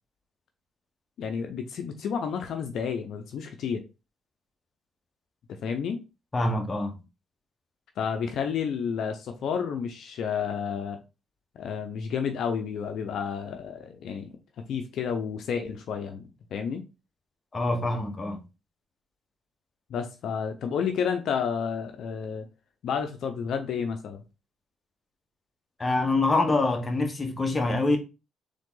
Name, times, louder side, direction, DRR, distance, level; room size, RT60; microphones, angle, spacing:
voice 1, 1.2-3.8 5.5-6.0 8.0-11.0 11.5-16.2 16.5-16.8 19.9-22.5 22.8-24.2, left 7 dB, 70° left, 0.7 m, -31 dB
voice 2, 6.3-6.9 17.5-18.4 25.8-28.0, left 2 dB, 25° left, 1.3 m, -25 dB
3.9 x 3.6 x 3.8 m
cardioid pair, 90°, 0 cm